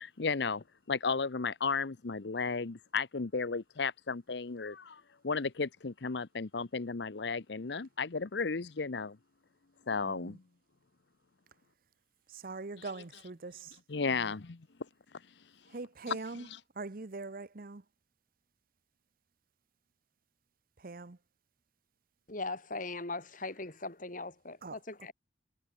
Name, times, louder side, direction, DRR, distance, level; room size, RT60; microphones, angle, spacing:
voice 1, 0.0-9.2 9.9-10.4 12.8-12.9 13.9-14.6 16.1-16.2 16.5-16.6, left 4 dB, 65° left, 0.8 m, -34 dB
voice 2, 10.0-10.4 12.3-13.8 14.1-14.3 15.7-16.5 16.8-17.8 20.8-21.2 24.6-24.8, right 3 dB, 50° right, 0.9 m, -42 dB
voice 3, 22.3-25.1, left 3 dB, 45° left, 3.9 m, -39 dB
head